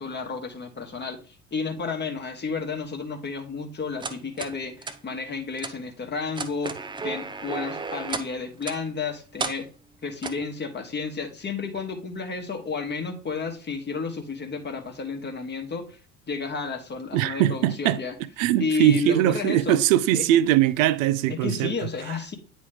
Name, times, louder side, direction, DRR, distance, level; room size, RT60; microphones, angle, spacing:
voice 1, 0.0-6.7 7.0-9.7 10.0-16.0 16.3-18.1 18.6-19.8 20.1-20.2 21.3-22.3, left 4 dB, 20° left, 1.2 m, -31 dB
sound 1, 4.0-4.5 4.8-5.0 5.6-5.7 6.3-8.3 8.6-8.8 9.4-9.6 10.2-10.4, right 4 dB, 10° right, 0.5 m, -32 dB
voice 2, 17.1-18.0 18.4-21.7, right 12 dB, 60° right, 0.6 m, -21 dB
9.5 x 3.2 x 3.4 m
figure-of-eight pair, 65°, 45 cm